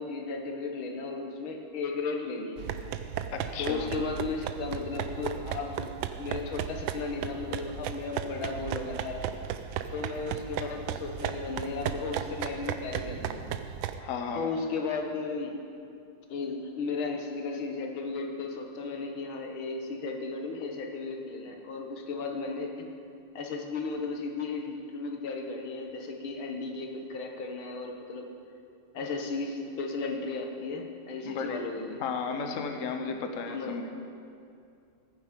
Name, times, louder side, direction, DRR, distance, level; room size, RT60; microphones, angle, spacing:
voice 1, 0.0-2.6 3.6-9.2 9.9-13.4 14.3-15.6 16.3-22.9 23.4-28.3 28.9-32.0 33.5-33.9, left 4 dB, 75° left, 2 dB, 2.0 m, -35 dB
sound 1, 2.6-14.0, right 9 dB, 75° right, 1.3 m, -35 dB
voice 2, 3.3-3.9 14.0-14.6 31.2-31.6 32.0-33.9, left 5 dB, 55° left, 5 dB, 1.0 m, -34 dB
14.5 x 9.8 x 5.1 m, 2.5 s
omnidirectional pair, 2.3 m